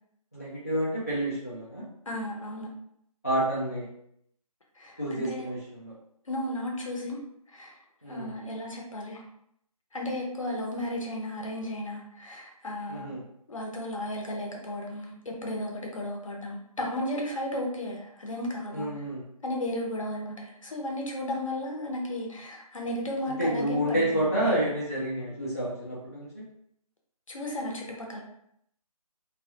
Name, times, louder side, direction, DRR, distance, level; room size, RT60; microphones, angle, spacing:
voice 1, 0.3-1.8 3.2-3.9 5.0-5.9 8.0-8.3 12.9-13.2 18.7-19.3 23.3-26.5, right 1 dB, 25° left, -9 dB, 0.4 m, -29 dB
voice 2, 2.1-2.7 4.8-5.5 6.3-7.2 7.5-7.7 8.1-9.2 9.9-13.1 13.5-15.2 15.4-18.9 19.4-24.2 27.3-28.2, left 1 dB, 55° left, 0 dB, 0.7 m, -34 dB
2.3 x 2.1 x 2.7 m, 0.72 s
figure-of-eight pair, 175°, 20 cm